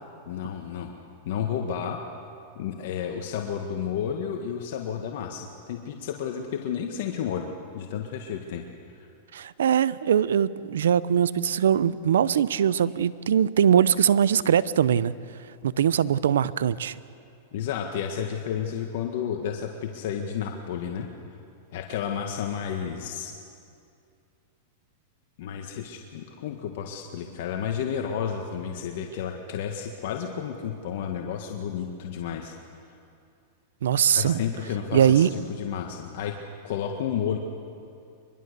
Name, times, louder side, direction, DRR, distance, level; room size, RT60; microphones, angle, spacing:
voice 1, 0.3-0.9 1.2-2.0 2.5-8.6 9.0-9.1 17.5-21.1 21.7-23.3 25.4-32.5 34.1-36.4 36.6-37.4, left 8 dB, 65° left, 2 dB, 1.7 m, -31 dB
voice 2, 9.3-15.1 15.6-16.9 33.8-34.4 34.9-35.3, right 9 dB, 90° right, 18 dB, 0.7 m, -21 dB
23.5 x 22.5 x 6.8 m, 2.5 s
hypercardioid pair, 130°, 0 cm